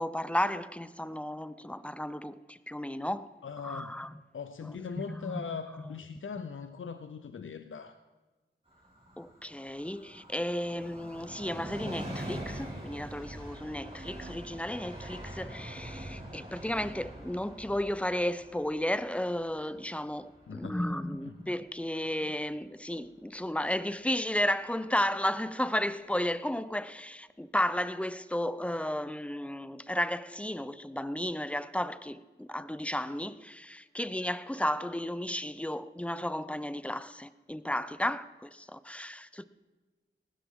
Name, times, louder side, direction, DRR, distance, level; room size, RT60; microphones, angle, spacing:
voice 1, 0.0-3.3 3.6-4.1 5.2-5.4 9.2-39.4, left 1 dB, 5° left, 0.6 m, -33 dB
voice 2, 3.4-3.9 4.3-8.0 20.5-20.8 21.2-21.3, left 6 dB, 80° left, 0.7 m, -40 dB
Train, 8.7-22.0 22.3-22.4, right 1 dB, 30° right, 5.1 m, -44 dB
19.0 x 16.5 x 3.7 m
wide cardioid pair, 70°, 20 cm